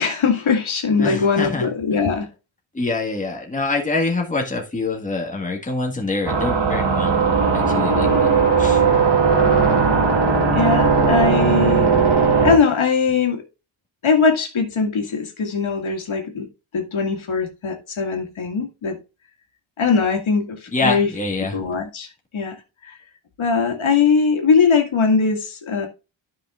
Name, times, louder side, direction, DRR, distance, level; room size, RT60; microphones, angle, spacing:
voice 1, 0.0-2.3 10.5-11.9 12.4-13.4 14.0-16.5 16.7-19.0 19.8-21.1 21.5-22.6 22.8-23.0 23.4-25.9, left 5 dB, 75° left, 2.0 m, -20 dB
voice 2, 1.0-1.7 2.7-7.2 7.5-8.8 20.7-21.6, left 3 dB, 15° left, 1.7 m, -25 dB
sound 1, 6.3-12.6, right 5 dB, 55° right, 2.1 m, -17 dB
13.5 x 5.7 x 2.4 m
wide cardioid pair, 175°, 48 cm